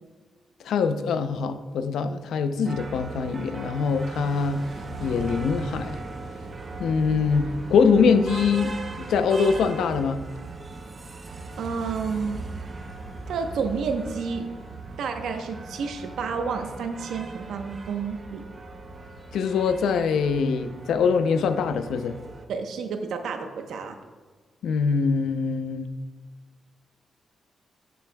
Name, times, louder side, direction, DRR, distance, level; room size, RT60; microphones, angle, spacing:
voice 1, 0.6-4.6 5.0-6.0 6.8-8.7 9.0-10.2 19.3-22.1 24.6-25.9, left 5 dB, 90° left, 10 dB, 0.5 m, -23 dB
sound 1, 2.6-22.5, right 3 dB, 35° right, 0.7 m, -38 dB
voice 2, 11.5-12.4 13.3-14.5 15.0-18.4 22.5-24.0, right 5 dB, 85° right, 5 dB, 0.8 m, -30 dB
12.0 x 6.8 x 2.2 m, 1.4 s
cardioid pair, 115°, 0 cm